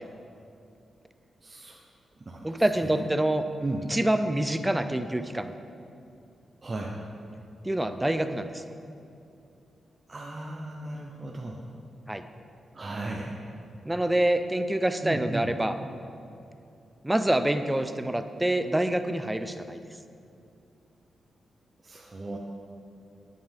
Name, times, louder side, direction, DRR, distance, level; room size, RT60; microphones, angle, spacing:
voice 1, 1.4-1.8 2.2-3.0 3.6-3.9 6.6-7.0 10.1-11.6 12.7-13.4 15.0-15.5 21.8-22.4, right 2 dB, 35° right, -1 dB, 0.8 m, -36 dB
voice 2, 2.4-3.4 3.9-5.5 7.6-8.7 12.1-12.2 13.8-15.8 17.0-19.8, right 1 dB, 10° right, 9 dB, 0.5 m, -26 dB
9.6 x 9.1 x 3.5 m, 2.6 s
cardioid pair, 70°, 0 cm